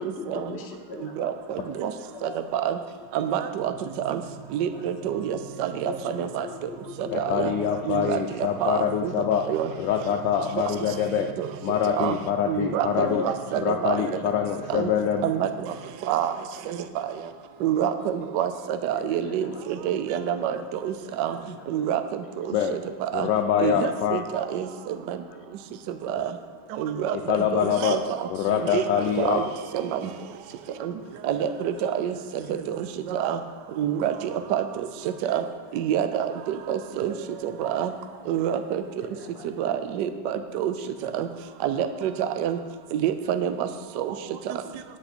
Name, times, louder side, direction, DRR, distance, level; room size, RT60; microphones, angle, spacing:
voice 1, 0.0-1.8 2.1-2.5 4.7-5.4 5.8-8.9 9.3-9.6 9.9-10.0 10.5-11.0 12.9-13.3 18.9-22.1 25.3-25.4 28.4-29.2 30.8-31.7 32.4-32.7 37.3-37.6 39.0-39.5 40.0-40.3 40.8-40.9, left 3 dB, 50° left, 2 dB, 0.8 m, -41 dB
voice 2, 2.2-2.8 3.1-3.7 4.0-4.2 4.5-6.5 7.1-7.5 7.9-8.2 8.6-9.1 9.5-9.7 11.4-11.5 12.0-12.2 12.5-14.0 14.7-14.9 15.2-15.5 16.1-16.3 16.7-16.8 17.6-18.5 18.8-19.5 19.8-20.6 20.8-21.4 21.7-22.0 23.1-23.3 23.6-24.7 25.1-25.2 26.1-26.3 26.8-28.3 28.7-28.8 29.2-29.4 29.7-30.0 30.8-30.9 31.2-32.1 32.5-32.8 33.1-33.4 33.8-34.1 34.5-34.6 35.2-35.4 35.7-37.1 37.4-37.9 38.3-38.8 39.6-40.7 41.1-41.3 41.6-42.1 42.4-42.6 42.9-43.7 44.0-44.1 44.5-44.6, right 10 dB, 75° right, 10 dB, 1.0 m, -27 dB
sound 1, 3.6-16.0, right 10 dB, 50° right, 0.8 m, -45 dB
voice 3, 7.1-9.5 9.7-11.3 11.6-13.2 13.6-15.3 22.5-22.8 23.1-24.2 27.1-28.0 28.3-29.4, left 9 dB, 75° left, 3 dB, 1.0 m, -25 dB
9.6 x 8.0 x 4.3 m, 1.5 s
omnidirectional pair, 2.4 m